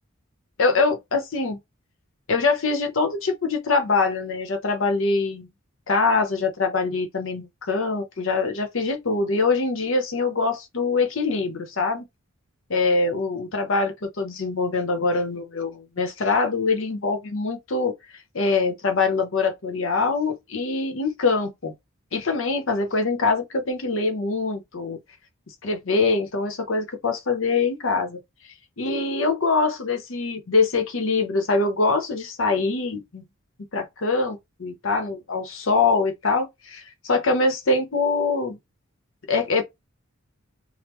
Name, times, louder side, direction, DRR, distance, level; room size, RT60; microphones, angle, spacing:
voice 1, 0.6-1.6 2.3-5.5 5.9-12.0 12.7-17.9 18.3-21.7 22.1-25.0 25.6-28.2 28.8-33.2 33.7-38.6 39.3-39.6, left 3 dB, 65° left, 0.8 m, -24 dB
3.0 x 2.1 x 3.5 m
head